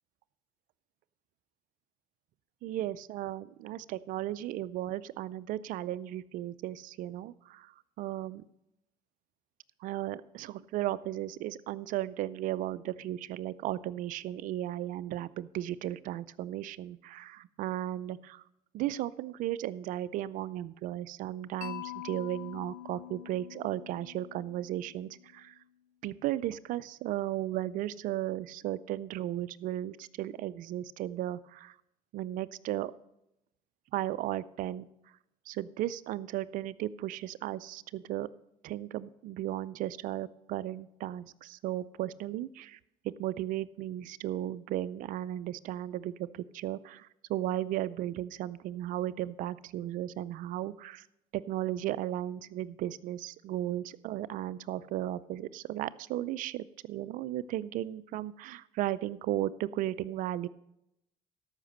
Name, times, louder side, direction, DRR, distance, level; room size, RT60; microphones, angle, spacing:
voice 1, 2.6-8.4 9.8-18.4 18.7-25.6 26.0-31.8 32.1-32.9 33.9-34.8 35.5-38.3 38.6-42.8 43.2-51.1 51.3-60.5, right 13 dB, 75° right, 18 dB, 0.5 m, -35 dB
Mallet percussion, 21.6-25.6, left 14 dB, 75° left, 0.8 m, -45 dB
13.0 x 5.9 x 6.7 m, 0.84 s
supercardioid pair, 75°, 14 cm